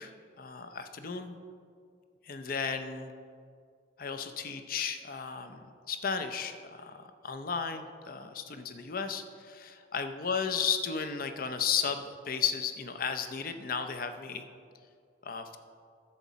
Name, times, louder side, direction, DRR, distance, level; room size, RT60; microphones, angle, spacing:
voice 1, 0.0-1.4 2.2-3.1 4.0-14.5 15.2-15.6, left 6 dB, 50° left, 8 dB, 0.5 m, -34 dB
10.5 x 7.3 x 4.1 m, 2.2 s
head